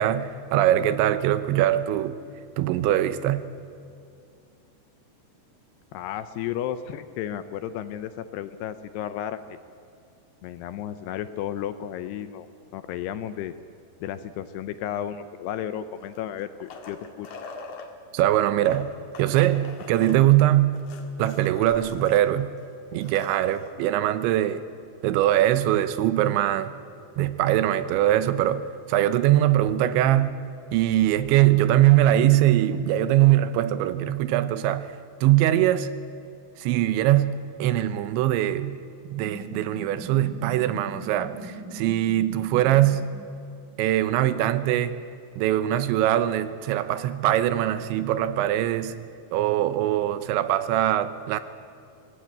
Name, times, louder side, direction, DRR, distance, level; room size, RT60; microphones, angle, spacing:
voice 1, 0.0-2.2 2.6-3.5 18.1-18.9 19.2-20.8 21.2-22.5 22.9-24.6 25.0-26.7 27.2-30.4 30.7-34.9 35.2-35.9 36.6-38.8 39.1-43.1 43.8-45.0 45.4-51.4, right 13 dB, 85° right, 3.2 m, -22 dB
voice 2, 5.9-9.6 10.4-12.5 12.7-13.6 14.0-17.3, left 10 dB, 80° left, 2.5 m, -33 dB
sound 1, 16.0-17.9 18.5-22.2 22.6-22.7 22.9-23.7 25.2-25.3, left 4 dB, 55° left, 2.6 m, -43 dB
sound 2, 39.2-43.1, right 2 dB, 5° left, 0.5 m, -40 dB
24.0 x 18.5 x 9.0 m
omnidirectional pair, 5.2 m